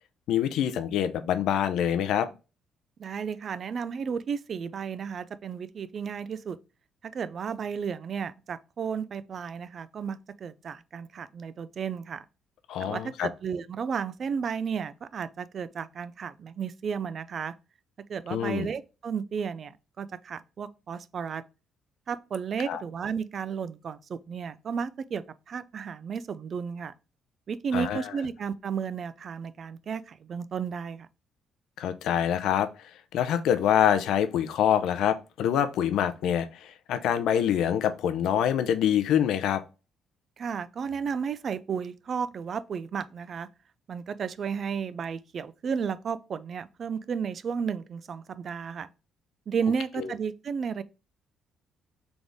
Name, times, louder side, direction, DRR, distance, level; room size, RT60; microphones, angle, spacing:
voice 1, 0.3-2.3 12.7-13.3 18.3-18.7 22.7-22.8 27.7-28.1 31.8-32.7 33.1-39.6 50.0-50.1, left 9 dB, 80° left, 0.5 m, -25 dB
voice 2, 3.0-6.6 7.0-12.2 12.8-17.5 18.1-21.4 22.1-26.9 27.5-31.1 40.4-43.5 43.9-48.9 49.5-50.8, right 6 dB, 45° right, 0.3 m, -33 dB
4.0 x 3.5 x 3.5 m
cardioid pair, 130°, 0 cm